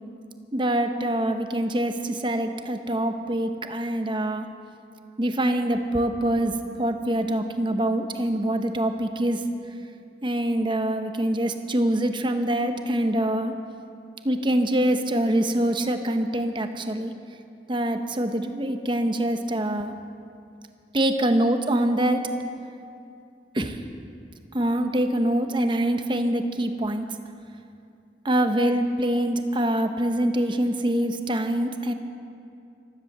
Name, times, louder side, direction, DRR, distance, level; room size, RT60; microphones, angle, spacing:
voice 1, 0.5-4.5 5.2-9.4 10.2-13.5 14.2-17.1 17.7-19.9 20.9-22.3 23.5-23.8 24.5-27.1 28.2-31.9, right 1 dB, 30° right, 7 dB, 0.9 m, -24 dB
15.0 x 13.5 x 6.7 m, 2.5 s
head